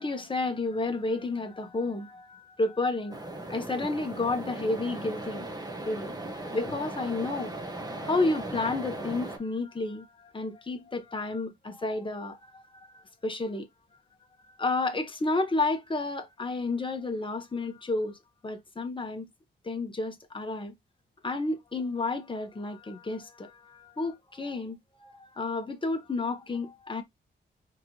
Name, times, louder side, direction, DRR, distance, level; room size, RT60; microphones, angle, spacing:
voice 1, 0.0-3.2 3.5-5.5 5.8-6.1 6.5-12.6 12.9-13.7 14.6-18.2 18.4-19.3 19.6-20.7 21.2-27.0, left 3 dB, 25° left, 1.3 m, -31 dB
sound 1, 3.1-9.4, right 1 dB, 20° right, 1.6 m, -38 dB
4.6 x 3.8 x 3.0 m
cardioid pair, 75°, 21 cm